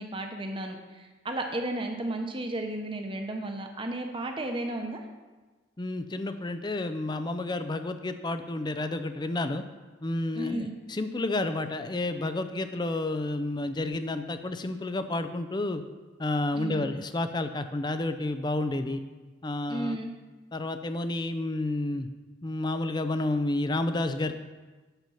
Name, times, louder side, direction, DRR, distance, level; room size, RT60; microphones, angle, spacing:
voice 1, 0.0-5.0 10.3-10.7 16.5-16.9 19.7-20.1, right 1 dB, 25° right, 4 dB, 1.0 m, -33 dB
voice 2, 5.8-9.6 10.0-15.8 16.2-19.0 19.4-20.0 20.5-22.1 22.4-24.3, left 2 dB, 20° left, 9 dB, 0.5 m, -30 dB
9.1 x 7.2 x 5.7 m, 1.3 s
head